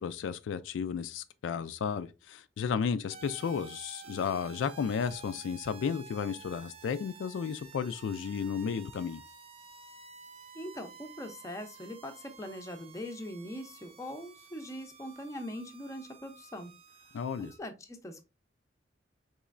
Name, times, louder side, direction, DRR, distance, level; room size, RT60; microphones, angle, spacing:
voice 1, 0.0-9.2 17.1-17.5, left 6 dB, 85° left, 0.3 m, -33 dB
sound 1, 3.1-17.6, right 5 dB, 30° right, 0.4 m, -52 dB
voice 2, 10.5-16.7 17.1-18.2, equal, 15° left, 0.5 m, -42 dB
4.2 x 3.0 x 2.4 m
head